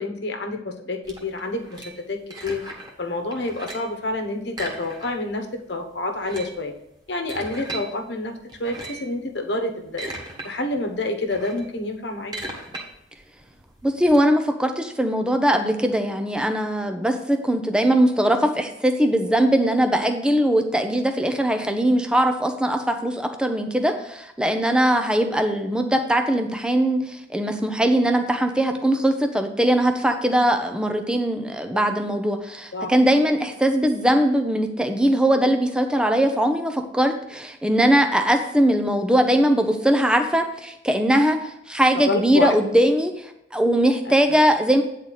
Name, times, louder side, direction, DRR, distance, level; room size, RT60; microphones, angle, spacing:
voice 1, 0.0-2.6 3.0-6.7 7.1-10.1 10.4-12.4 32.7-32.9 41.9-42.5 44.0-44.4, left 2 dB, 65° left, 4 dB, 1.1 m, -28 dB
sound 1, 1.0-3.0 3.3-4.0 4.5-5.4 5.6-5.7 6.1-7.9 8.5-9.1 9.7-10.5 10.8-14.2, right 2 dB, 25° right, 1.5 m, -37 dB
voice 2, 13.8-44.8, right 1 dB, 5° right, 6 dB, 0.7 m, -20 dB
9.3 x 4.1 x 6.5 m, 0.83 s
head